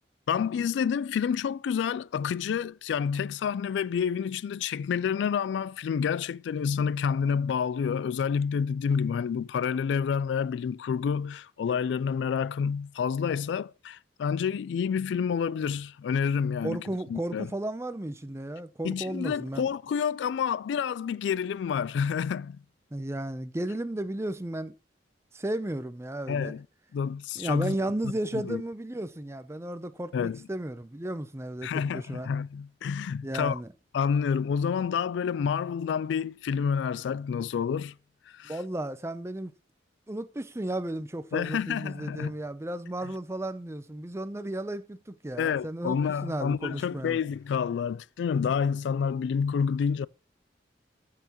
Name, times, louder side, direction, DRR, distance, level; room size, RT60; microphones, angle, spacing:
voice 1, 0.3-16.8 17.1-17.5 18.8-22.6 26.3-26.6 26.9-27.8 28.5-28.6 30.1-30.4 31.6-33.6 33.9-37.9 38.3-38.6 41.3-42.3 45.4-50.1, left 7 dB, 75° left, 0.3 m, -28 dB
voice 2, 16.6-19.7 22.9-24.8 25.3-26.5 27.4-32.3 33.2-33.7 38.4-39.5 40.1-47.2, right 1 dB, 15° right, 0.5 m, -34 dB
13.5 x 5.7 x 2.9 m
head